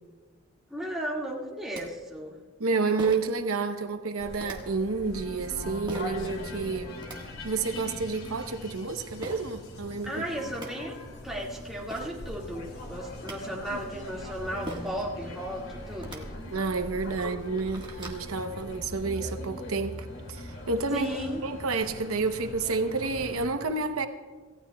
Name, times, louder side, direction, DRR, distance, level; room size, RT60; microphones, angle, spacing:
voice 1, 0.7-2.4 10.1-11.0 11.2-16.3 17.2-17.3 20.9-21.4, right 1 dB, ahead, -4 dB, 1.9 m, -35 dB
sound 1, 1.7-1.8 3.0-3.4 4.4-4.6 5.9-6.1 6.8-7.2 9.2-9.4 10.2-10.3 10.5-10.7 11.6-11.7 11.9-12.1 12.9-13.4 14.7-15.0 15.9-16.2 16.8-16.9 17.3-18.2, right 2 dB, 20° right, 1.5 m, -40 dB
voice 2, 2.6-6.9 7.4-10.2 13.7-13.8 16.5-20.0 20.3-21.1 21.4-24.1, right 4 dB, 80° right, 7 dB, 0.8 m, -30 dB
sound 2, 4.2-23.5, left 1 dB, 70° left, 2.3 m, -41 dB
26.5 x 15.5 x 2.3 m, 1.3 s
head